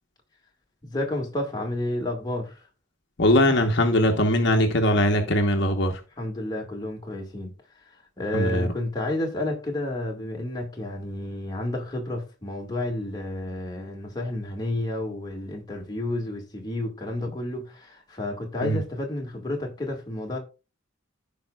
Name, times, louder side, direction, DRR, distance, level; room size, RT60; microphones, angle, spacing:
voice 1, 0.8-2.7 6.2-7.5 8.2-20.4, left 1 dB, 20° left, 1.9 m, -31 dB
voice 2, 3.2-5.9 8.3-8.7 18.6-18.8, left 1 dB, 60° left, 1.1 m, -21 dB
15.0 x 5.3 x 2.4 m
head